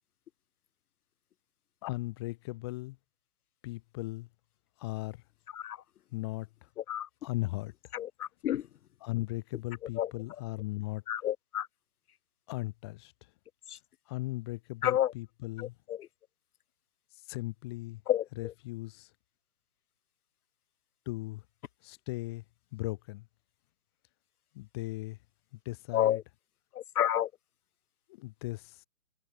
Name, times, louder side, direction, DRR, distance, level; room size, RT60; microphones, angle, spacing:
voice 1, 1.8-3.0 3.6-4.3 4.8-5.2 6.1-6.7 7.2-7.7 9.0-11.0 12.5-13.3 14.1-15.8 17.1-18.0 18.3-19.1 21.1-21.5 21.8-22.4 22.7-23.3 24.5-25.2 25.5-26.2 28.1-28.8, left 20 dB, 15° left, 1.9 m, -37 dB
voice 2, 7.9-8.6 10.0-10.1 11.1-11.7 13.7-13.8 14.8-15.1 18.1-18.2 25.9-26.2 27.0-27.3, left 11 dB, 75° left, 0.6 m, -28 dB
hypercardioid pair, 170°, 45 cm